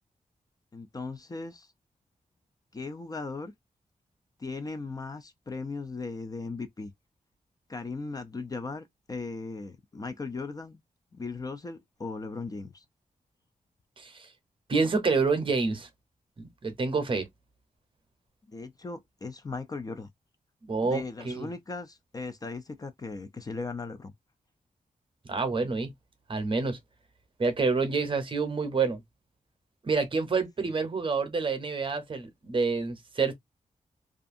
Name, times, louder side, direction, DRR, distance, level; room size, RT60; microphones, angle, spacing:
voice 1, 0.7-1.7 2.7-3.5 4.4-6.9 7.7-10.8 11.1-12.8 18.5-20.1 20.8-24.1 30.6-30.7, left 3 dB, 25° left, 0.4 m, -38 dB
voice 2, 14.0-14.3 14.7-15.9 16.4-17.3 20.7-21.5 25.3-25.9 26.3-26.8 27.4-29.0 29.8-33.3, right 4 dB, 40° right, 0.7 m, -28 dB
2.5 x 2.4 x 2.5 m
wide cardioid pair, 130°, 14 cm